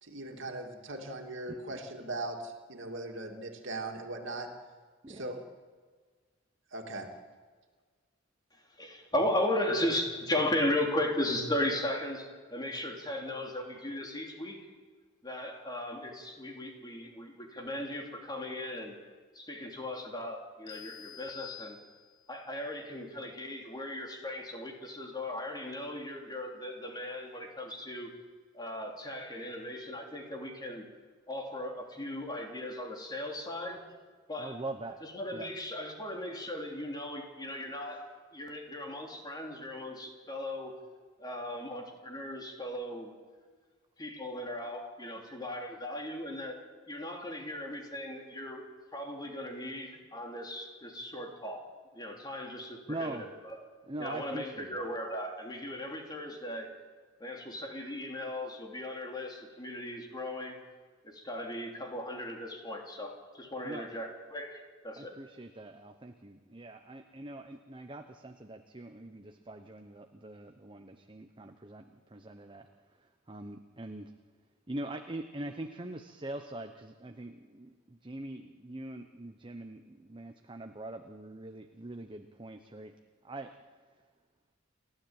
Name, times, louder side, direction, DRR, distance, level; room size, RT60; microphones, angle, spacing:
voice 1, 0.0-4.5 5.1-5.4 6.7-7.1, right 2 dB, 65° right, 3 dB, 2.7 m, -39 dB
voice 2, 1.5-1.8 5.0-5.3 34.4-35.0 35.3-35.5 37.9-38.0 52.9-53.3 53.8-54.8 63.6-63.9 65.0-72.7 73.0-74.1 74.7-83.0 83.2-83.5, right 2 dB, 25° right, 6 dB, 1.0 m, -43 dB
voice 3, 8.8-14.6 15.2-19.0 19.3-21.8 22.3-28.1 28.5-30.9 31.3-33.8 34.3-34.6 35.1-38.1 38.3-40.7 41.2-43.1 44.0-48.6 48.9-51.7 51.9-53.3 54.0-56.7 57.2-60.6 61.0-65.1, left 1 dB, 20° left, 1 dB, 3.2 m, -36 dB
sound 1, 20.7-22.4, left 12 dB, 75° left, 2.5 m, -48 dB
29.5 x 12.5 x 8.9 m, 1.5 s
head